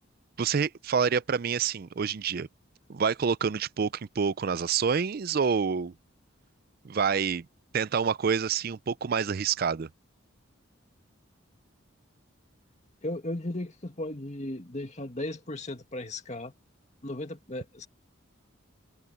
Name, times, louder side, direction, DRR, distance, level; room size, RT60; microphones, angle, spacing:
voice 1, 0.4-2.5 2.9-5.9 6.8-7.5 7.7-9.9, right 6 dB, 50° right, 0.4 m, -27 dB
voice 2, 13.0-16.5 17.0-17.9, left 1 dB, 35° left, 2.1 m, -36 dB
head